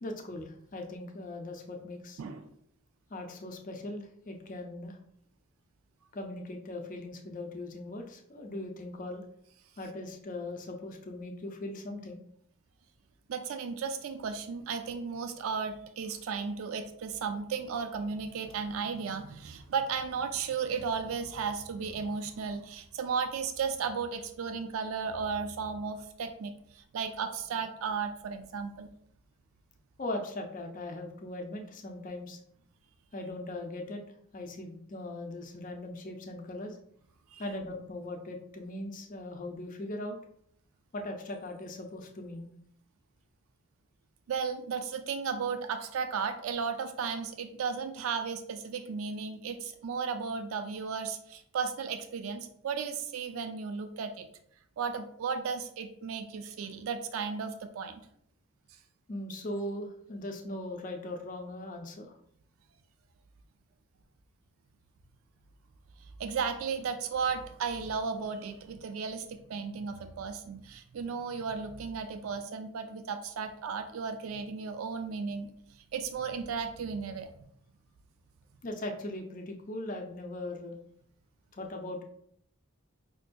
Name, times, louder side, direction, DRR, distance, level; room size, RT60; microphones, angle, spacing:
voice 1, 0.0-2.2 3.1-5.0 6.1-9.2 9.8-12.2 30.0-32.4 33.1-34.0 34.3-36.8 37.4-40.2 40.9-42.5 59.1-62.1 78.6-80.8 81.5-82.0, left 1 dB, 40° left, 3 dB, 0.5 m, -39 dB
voice 2, 13.3-28.9 37.3-37.4 44.3-54.3 54.8-58.0 66.2-75.5 75.9-77.3, right 5 dB, 75° right, 8 dB, 0.4 m, -35 dB
5.2 x 2.5 x 2.2 m, 0.68 s
head